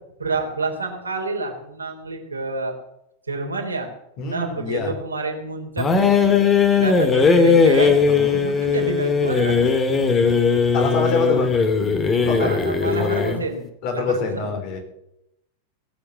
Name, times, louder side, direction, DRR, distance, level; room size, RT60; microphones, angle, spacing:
voice 1, 0.2-2.7 3.3-3.9 4.3-6.0 6.8-8.0 8.4-9.6 12.4-13.6 13.9-14.5, right 3 dB, 80° right, 2 dB, 3.4 m, -28 dB
voice 2, 4.2-5.0 8.1-8.4 10.7-11.6 12.2-13.5 13.8-14.8, left 4 dB, 45° left, 3 dB, 4.6 m, -26 dB
sound 1, 5.8-13.4, left 5 dB, 20° left, 2.2 m, -18 dB
19.0 x 8.1 x 8.5 m, 0.82 s
figure-of-eight pair, 90°, 0 cm